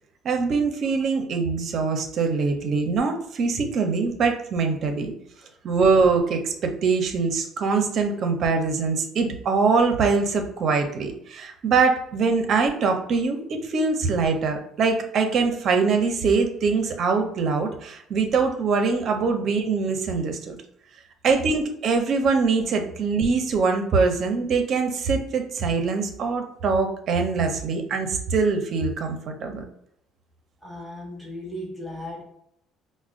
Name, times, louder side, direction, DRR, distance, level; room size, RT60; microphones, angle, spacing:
voice 1, 0.2-5.1 5.6-20.6 21.2-29.6, right 4 dB, 45° right, 4 dB, 0.6 m, -23 dB
voice 2, 30.6-32.2, left 1 dB, ahead, -3 dB, 0.8 m, -36 dB
4.8 x 2.1 x 2.4 m, 0.71 s
cardioid pair, 150°, 0 cm